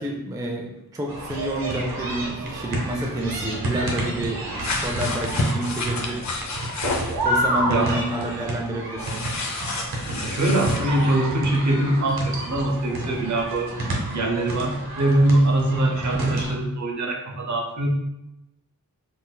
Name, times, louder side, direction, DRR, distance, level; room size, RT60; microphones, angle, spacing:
voice 1, 0.0-6.3 7.2-9.2, right 1 dB, 10° right, 1 dB, 0.3 m, -29 dB
sound 1, 1.1-16.5, right 1 dB, 85° right, 0.8 m, -30 dB
sound 2, 4.6-7.1 9.0-10.8, left 2 dB, 55° left, 0.5 m, -29 dB
voice 2, 10.2-13.7 14.1-17.9, right 1 dB, 55° right, 1 dB, 0.6 m, -22 dB
3.8 x 2.6 x 2.2 m, 0.91 s
wide cardioid pair, 105°, 35 cm